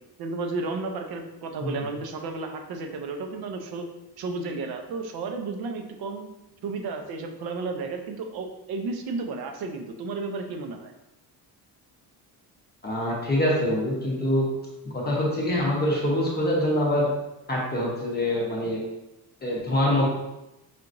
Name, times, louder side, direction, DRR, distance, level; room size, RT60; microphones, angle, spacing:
voice 1, 0.2-3.9 4.2-6.3 6.6-10.9, right 3 dB, 65° right, 4 dB, 0.7 m, -33 dB
voice 2, 12.8-14.5 14.8-17.1 17.5-18.8 19.4-20.0, left 1 dB, 25° left, -4 dB, 0.8 m, -24 dB
5.0 x 2.9 x 2.6 m, 0.95 s
cardioid pair, 155°, 40 cm